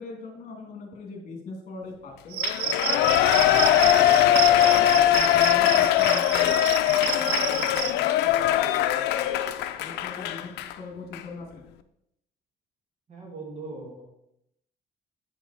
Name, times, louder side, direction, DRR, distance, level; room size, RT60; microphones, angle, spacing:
voice 1, 0.0-3.5 4.0-6.5 7.2-9.4 9.8-11.6, left 3 dB, 45° left, 1 dB, 1.9 m, -41 dB
Cricket, 2.3-7.9, right 9 dB, 70° right, 0.6 m, -30 dB
Shout / Cheering, 2.4-10.7 11.1-11.2, left 12 dB, 85° left, 0.5 m, -21 dB
voice 2, 13.1-14.0, right 3 dB, 40° right, -1 dB, 2.1 m, -39 dB
8.8 x 4.7 x 4.1 m, 0.80 s
cardioid pair, 110°, 17 cm